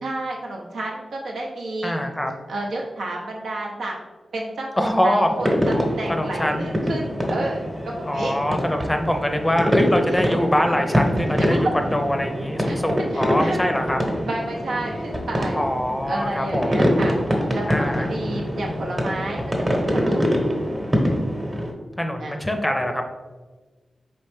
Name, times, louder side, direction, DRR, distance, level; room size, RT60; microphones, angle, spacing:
voice 1, 0.0-1.9 2.5-3.9 4.3-8.3 10.1-10.2 11.4-11.6 12.7-12.8 13.1-13.6 14.2-15.6 16.1-17.1 17.5-19.4 19.7-20.4 22.2-22.4, right 2 dB, 80° right, -2 dB, 0.7 m, -31 dB
voice 2, 1.8-2.3 4.8-5.3 6.1-6.7 8.1-14.0 15.5-16.9 17.7-18.1 22.0-23.0, equal, 20° left, 4 dB, 0.6 m, -23 dB
sound 1, 5.4-21.7, equal, 25° right, 1.0 m, -24 dB
4.3 x 3.1 x 3.3 m, 1.3 s
cardioid pair, 45°, 0 cm